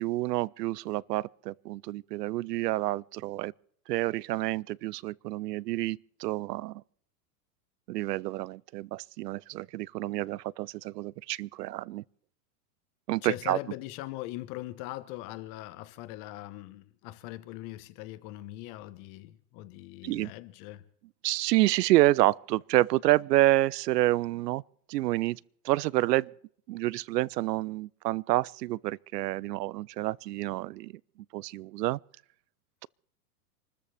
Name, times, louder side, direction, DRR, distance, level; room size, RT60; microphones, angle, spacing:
voice 1, 0.0-3.5 3.9-6.8 7.9-12.0 13.1-13.6 20.0-20.3 21.2-24.6 24.9-25.4 25.6-26.3 26.7-30.9 31.3-32.0, right 17 dB, 80° right, 0.5 m, -28 dB
voice 2, 13.2-20.8, left 17 dB, 40° left, 1.2 m, -41 dB
27.5 x 13.5 x 3.4 m
supercardioid pair, 140°, 48 cm